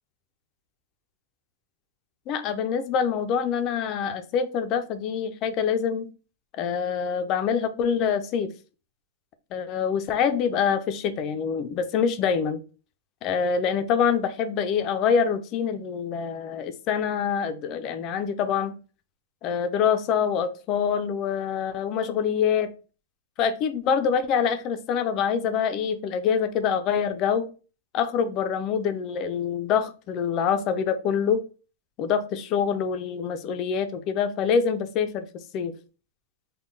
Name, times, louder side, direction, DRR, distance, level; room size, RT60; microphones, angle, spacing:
voice 1, 2.3-6.1 6.6-8.5 9.5-12.6 13.2-18.8 19.4-22.7 23.4-27.5 27.9-31.4 32.0-35.3 35.5-35.7, left 7 dB, 30° left, 0.4 m, -25 dB
3.7 x 2.2 x 3.7 m
supercardioid pair, 165°, 0 cm